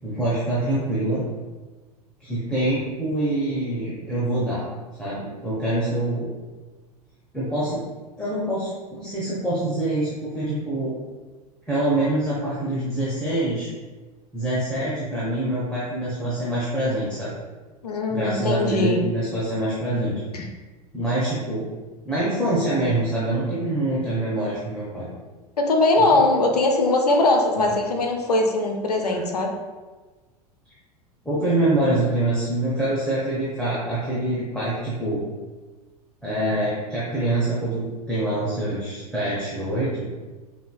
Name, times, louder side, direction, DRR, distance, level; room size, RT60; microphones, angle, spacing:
voice 1, 0.0-1.2 2.2-4.6 5.0-6.3 7.3-7.8 8.2-10.9 11.7-13.7 14.3-17.3 18.1-20.2 20.9-21.7 22.0-25.1 26.1-26.2 29.1-29.2 31.2-35.2 36.2-40.1, right 1 dB, 5° left, -9 dB, 0.9 m, -25 dB
voice 2, 17.8-19.0 20.3-20.5 25.6-29.5, left 2 dB, 75° left, 3 dB, 0.5 m, -21 dB
5.4 x 2.7 x 2.2 m, 1.3 s
figure-of-eight pair, 80°, 20 cm